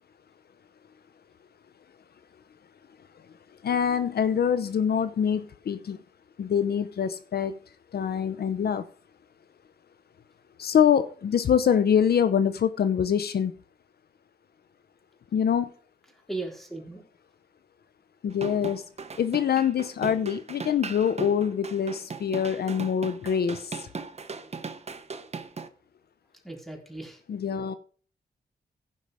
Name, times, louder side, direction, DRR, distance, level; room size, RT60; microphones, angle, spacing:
voice 1, 3.6-6.0 6.4-7.6 7.9-8.8 10.6-13.5 15.3-15.7 18.2-18.8 19.2-23.9 27.3-27.7, left 8 dB, 70° left, 0.7 m, -25 dB
voice 2, 16.3-17.0 26.4-27.2, right 3 dB, ahead, 3.9 m, -37 dB
sound 1, 18.3-25.7, right 4 dB, 40° right, 1.1 m, -38 dB
15.5 x 5.5 x 4.9 m
cardioid pair, 80°, 17 cm